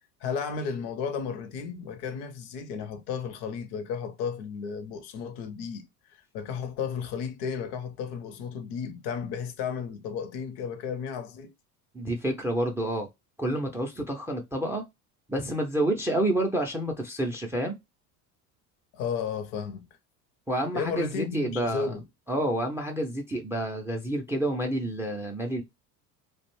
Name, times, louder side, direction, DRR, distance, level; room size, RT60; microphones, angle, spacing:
voice 1, 0.2-5.9 6.3-11.5 18.9-19.9 20.7-22.0, left 6 dB, 60° left, 0.7 m, -33 dB
voice 2, 11.9-13.1 13.4-14.8 15.3-17.7 20.5-22.0 22.3-25.6, right 1 dB, 5° right, 0.4 m, -29 dB
2.5 x 2.2 x 3.0 m
hypercardioid pair, 75°, 47 cm